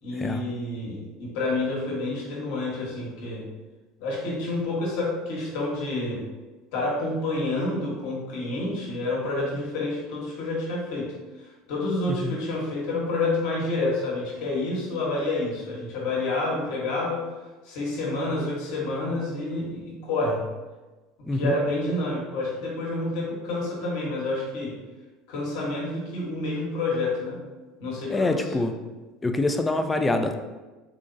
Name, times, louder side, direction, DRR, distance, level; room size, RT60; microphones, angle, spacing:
voice 1, 0.0-3.5 4.0-6.2 6.7-11.1 11.4-17.2 17.6-20.4 21.2-24.8 25.3-27.4 27.8-28.7, left 2 dB, 70° left, -4 dB, 1.2 m, -29 dB
voice 2, 28.1-28.7 29.2-30.3, left 2 dB, 15° left, 7 dB, 0.4 m, -25 dB
3.7 x 2.9 x 2.6 m, 1.2 s
hypercardioid pair, 75°, 0 cm